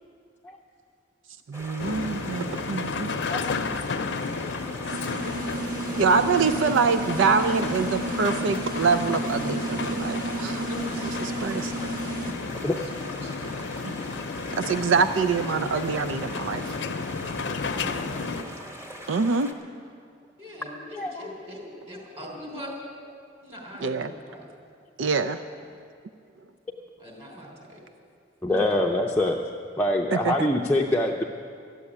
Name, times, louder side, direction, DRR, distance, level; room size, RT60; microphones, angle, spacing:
sound 1, 1.5-19.5, equal, 15° right, 1.2 m, -42 dB
voice 1, 1.5-3.1 6.0-10.6 11.2-11.7 14.5-16.8 19.1-19.5 23.8-24.1 25.0-25.4 30.1-30.5, right 5 dB, 80° right, 10 dB, 0.4 m, -25 dB
sound 2, 1.8-18.4, left 4 dB, 70° left, 0.6 m, -32 dB
sound 3, 4.9-12.3, right 2 dB, 50° right, 1.4 m, -33 dB
voice 2, 5.9-6.4 10.5-11.2 12.4-12.9 13.2-13.9 17.6-18.5 20.4-22.7 23.4-24.5 25.5-25.8 27.0-27.8 28.5-29.0, left 1 dB, 35° right, -1 dB, 3.6 m, -41 dB
voice 3, 20.9-21.3 28.4-29.4 29.8-31.3, left 1 dB, 10° left, -1 dB, 0.6 m, -24 dB
14.0 x 8.3 x 9.9 m, 2.3 s
head